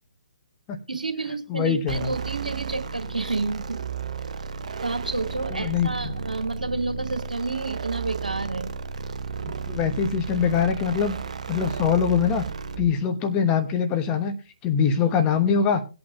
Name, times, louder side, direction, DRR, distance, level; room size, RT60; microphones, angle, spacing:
voice 1, 0.9-3.8 4.8-8.7, right 3 dB, 80° right, 6 dB, 2.1 m, -30 dB
voice 2, 1.5-2.1 5.5-6.1 9.7-11.2 11.5-12.5 12.8-14.3 14.6-15.8, left 7 dB, 20° left, 6 dB, 1.1 m, -23 dB
sound 1, 1.9-12.9, right 5 dB, 55° right, 0.8 m, -33 dB
20.5 x 8.6 x 2.3 m, 0.31 s
figure-of-eight pair, 135°, 4 cm